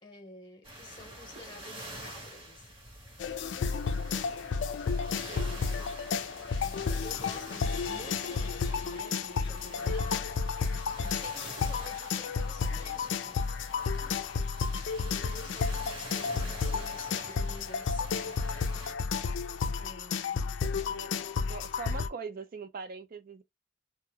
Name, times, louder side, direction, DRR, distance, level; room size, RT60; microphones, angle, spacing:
voice 1, 0.0-2.7 5.1-5.6 6.6-13.4 15.0-18.4 19.8-21.1, left 2 dB, 25° left, 1.0 m, -50 dB
sound 1, 0.6-18.9, right 1 dB, 30° right, 1.2 m, -47 dB
sound 2, 3.2-22.1, left 5 dB, 70° left, 0.3 m, -32 dB
voice 2, 21.5-23.4, right 4 dB, 50° right, 0.4 m, -41 dB
2.3 x 2.1 x 3.2 m
head